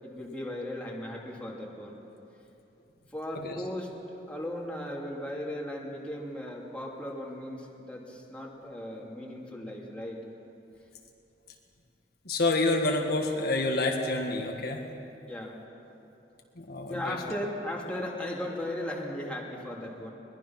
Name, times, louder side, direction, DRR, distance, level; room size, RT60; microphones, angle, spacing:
voice 1, 0.0-2.0 3.1-10.2 15.3-15.6 16.9-20.1, left 1 dB, 10° left, -3 dB, 2.7 m, -37 dB
voice 2, 12.3-14.8 16.6-17.2, left 2 dB, 60° left, 1 dB, 1.8 m, -28 dB
21.5 x 21.5 x 5.9 m, 2.8 s
head